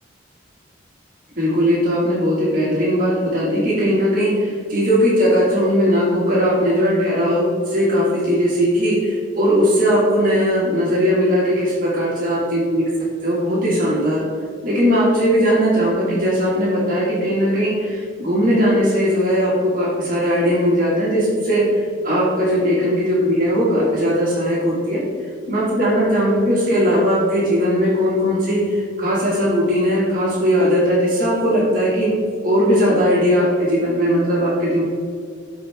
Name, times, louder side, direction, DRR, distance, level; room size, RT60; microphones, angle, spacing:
voice 1, 1.4-12.8 13.2-14.2 14.6-25.0 25.5-32.1 32.4-34.8, equal, 45° right, -6 dB, 2.1 m, -18 dB
13.0 x 4.7 x 3.6 m, 2.1 s
head